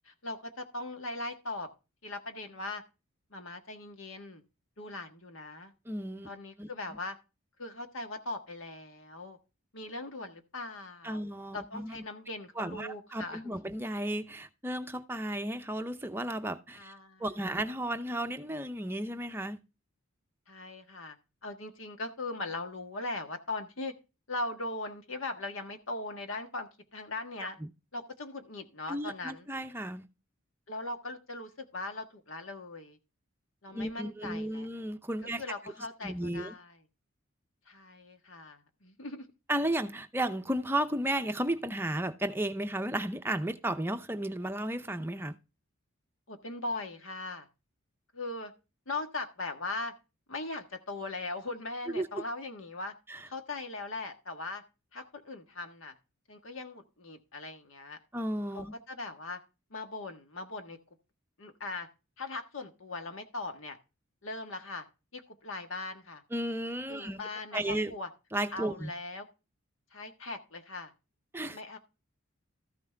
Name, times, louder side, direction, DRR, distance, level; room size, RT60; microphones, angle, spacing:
voice 1, 0.0-1.7 2.0-2.8 3.3-4.4 4.8-5.7 6.2-7.2 7.6-9.4 9.7-11.2 11.5-13.6 16.7-17.2 20.5-21.2 21.4-23.9 24.3-27.6 27.9-29.5 30.7-33.0 33.6-34.7 35.4-36.8 37.7-39.3 46.3-47.5 48.1-48.5 48.9-49.9 50.3-52.9 53.2-54.6 54.9-55.9 56.3-58.0 58.5-59.4 59.7-60.8 61.4-61.9 62.2-63.8 64.2-64.8 65.1-66.2 66.9-68.1 68.5-69.3 69.9-70.9 71.4-71.8, left 2 dB, 70° left, 1.5 m, -39 dB
voice 2, 5.9-6.3 6.6-6.7 11.0-12.0 12.6-16.9 17.2-19.6 27.4-27.7 28.9-30.0 33.7-35.4 36.0-36.5 39.5-45.3 51.9-52.2 53.1-53.3 58.1-58.7 66.3-67.2 67.5-67.9 68.3-68.9 71.3-71.6, right 1 dB, 10° right, 0.6 m, -34 dB
14.0 x 6.1 x 3.4 m
head